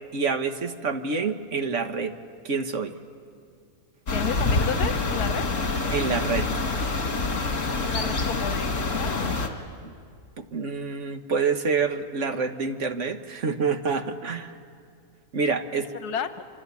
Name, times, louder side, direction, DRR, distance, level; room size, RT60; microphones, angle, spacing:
voice 1, 0.1-2.1 2.4-2.9 5.9-6.6 9.8-9.9 10.4-14.5 15.3-15.9, right 5 dB, 50° right, 7 dB, 1.5 m, -27 dB
voice 2, 4.1-5.4 7.8-9.4 16.0-16.5, left 7 dB, 75° left, 10 dB, 1.5 m, -32 dB
sound 1, 4.1-9.5, left 3 dB, 55° left, 2.4 m, -26 dB
26.5 x 26.5 x 8.4 m, 2.2 s
omnidirectional pair, 1.7 m